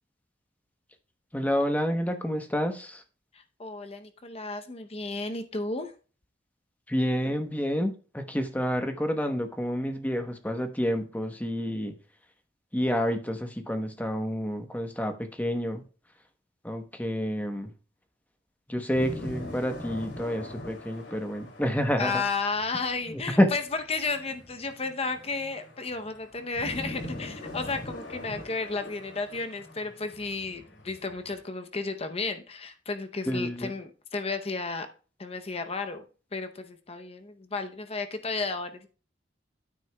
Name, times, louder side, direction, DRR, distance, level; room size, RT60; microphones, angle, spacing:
voice 1, 1.3-3.0 6.9-11.9 12.7-15.8 16.6-17.7 18.7-22.2 23.1-23.5 33.3-33.7, equal, 10° left, 6 dB, 0.9 m, -28 dB
voice 2, 3.3-5.9 22.0-34.9 35.2-36.0 36.3-38.9, left 3 dB, 35° left, 7 dB, 0.7 m, -33 dB
sound 1, 18.9-31.4, left 1 dB, 85° left, 2.5 m, -43 dB
10.5 x 9.3 x 2.3 m, 0.36 s
head